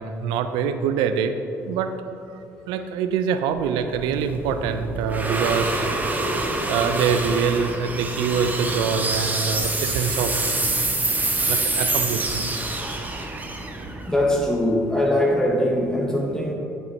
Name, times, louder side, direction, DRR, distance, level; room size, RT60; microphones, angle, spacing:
voice 1, 0.0-1.3 1.7-2.2 2.7-5.9 6.2-10.7 11.2-12.6, right 6 dB, 70° right, 9 dB, 0.4 m, -25 dB
sound 1, 3.6-14.8, right 2 dB, 20° right, 0.9 m, -26 dB
voice 2, 14.1-16.5, left 1 dB, 10° left, -1 dB, 0.9 m, -22 dB
8.9 x 5.4 x 3.3 m, 2.8 s
hypercardioid pair, 55°, 8 cm